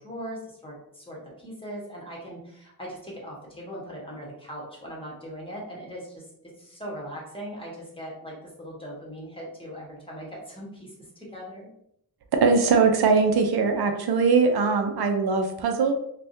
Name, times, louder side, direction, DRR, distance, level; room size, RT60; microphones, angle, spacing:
voice 1, 0.0-11.7, equal, 15° left, -4 dB, 1.1 m, -40 dB
voice 2, 12.4-15.9, right 4 dB, 90° right, 5 dB, 0.5 m, -21 dB
3.4 x 2.3 x 2.6 m, 0.73 s
wide cardioid pair, 70°, 37 cm